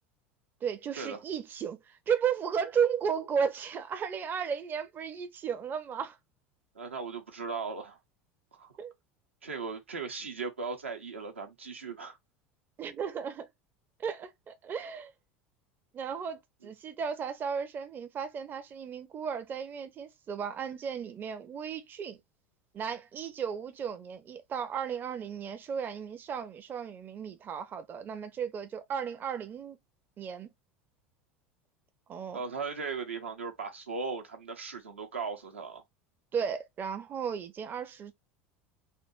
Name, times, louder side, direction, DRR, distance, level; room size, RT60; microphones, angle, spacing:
voice 1, 0.6-6.2 8.8-8.9 12.8-13.5 14.0-15.1 15.9-22.2 22.7-29.8 30.2-30.5 32.1-32.4 36.3-38.1, right 7 dB, 30° right, 0.5 m, -34 dB
voice 2, 6.7-8.0 8.5-8.7 9.4-12.2 32.3-35.8, right 4 dB, 85° right, 0.8 m, -37 dB
3.3 x 2.2 x 3.0 m
figure-of-eight pair, 75°, 6 cm